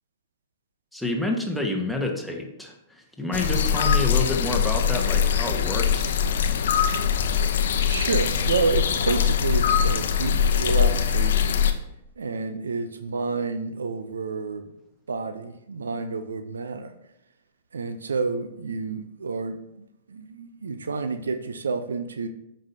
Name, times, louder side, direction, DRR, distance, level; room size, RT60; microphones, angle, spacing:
voice 1, 0.9-6.1, left 2 dB, ahead, 0 dB, 1.4 m, -29 dB
sound 1, 3.3-11.7, left 7 dB, 65° left, 0.7 m, -22 dB
voice 2, 7.9-11.7 12.2-14.7 15.1-16.9 17.7-22.3, right 4 dB, 80° right, 10 dB, 0.6 m, -29 dB
13.5 x 5.4 x 2.8 m, 0.84 s
figure-of-eight pair, 105°, 0 cm